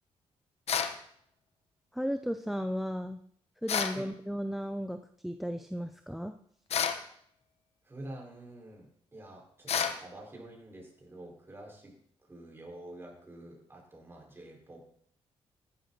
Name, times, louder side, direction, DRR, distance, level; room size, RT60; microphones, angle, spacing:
sound 1, 0.7-1.0 3.7-4.0 6.7-7.0 9.7-10.0, left 7 dB, 70° left, 1.2 m, -29 dB
voice 1, 1.9-3.2 3.6-6.3, equal, ahead, 9 dB, 0.7 m, -35 dB
voice 2, 7.8-11.9 12.3-14.9, right 1 dB, 20° right, -1 dB, 4.8 m, -48 dB
15.0 x 11.5 x 4.1 m, 0.64 s
cardioid pair, 90°, 11 cm